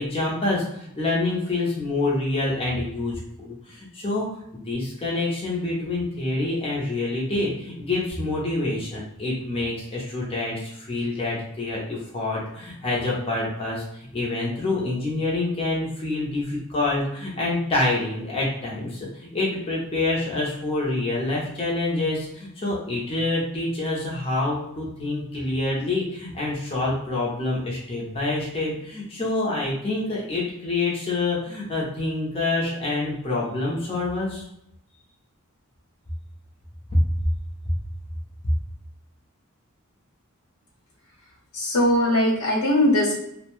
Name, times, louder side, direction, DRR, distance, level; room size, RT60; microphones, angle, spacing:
voice 1, 0.0-4.3 4.5-34.4, left 2 dB, 25° left, -5 dB, 0.6 m, -27 dB
voice 2, 41.5-43.1, left 1 dB, 75° left, -2 dB, 0.9 m, -20 dB
2.6 x 2.1 x 3.0 m, 0.76 s
head